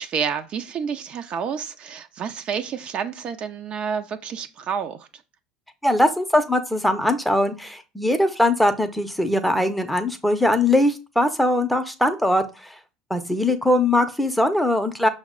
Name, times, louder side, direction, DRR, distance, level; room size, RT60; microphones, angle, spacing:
voice 1, 0.0-5.1, right 7 dB, 45° right, 0.4 m, -29 dB
voice 2, 5.8-12.4 13.1-15.1, left 1 dB, ahead, 0.6 m, -21 dB
5.7 x 2.1 x 3.6 m
hypercardioid pair, 80°, 3 cm